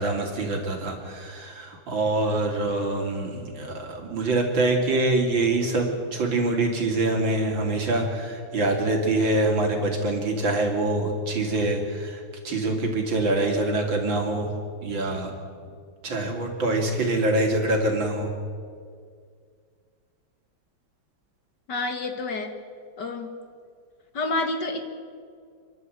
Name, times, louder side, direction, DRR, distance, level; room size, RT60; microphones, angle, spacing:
voice 1, 0.0-14.5 14.8-15.3 16.0-18.3, right 2 dB, 65° right, 2 dB, 3.5 m, -25 dB
voice 2, 21.7-22.5 23.0-23.3 24.1-24.9, left 3 dB, 55° left, 6 dB, 2.2 m, -28 dB
28.5 x 11.5 x 8.0 m, 2.1 s
omnidirectional pair, 2.3 m